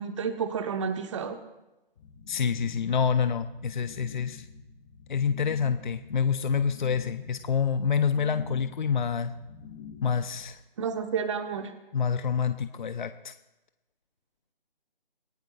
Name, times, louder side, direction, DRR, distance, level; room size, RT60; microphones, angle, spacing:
voice 1, 0.0-1.4 10.8-11.7, right 6 dB, 30° right, 8 dB, 1.2 m, -30 dB
sound 1, 2.0-10.5, left 6 dB, 5° left, 0.5 m, -47 dB
voice 2, 2.3-4.5 5.1-9.3 10.0-10.6 11.9-13.3, left 6 dB, 55° left, 10 dB, 0.8 m, -27 dB
26.5 x 16.5 x 2.5 m, 0.99 s
figure-of-eight pair, 155°, 29 cm